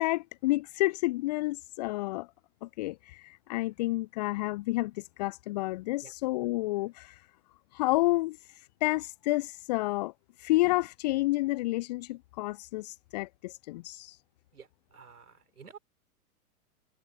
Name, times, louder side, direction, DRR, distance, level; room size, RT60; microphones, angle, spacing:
voice 1, 0.0-2.3 2.6-7.3 7.7-10.1 10.4-14.2, left 20 dB, 30° left, 0.5 m, -30 dB
voice 2, 14.5-15.8, right 6 dB, 75° right, 4.9 m, -51 dB
figure-of-eight pair, 100°, 46 cm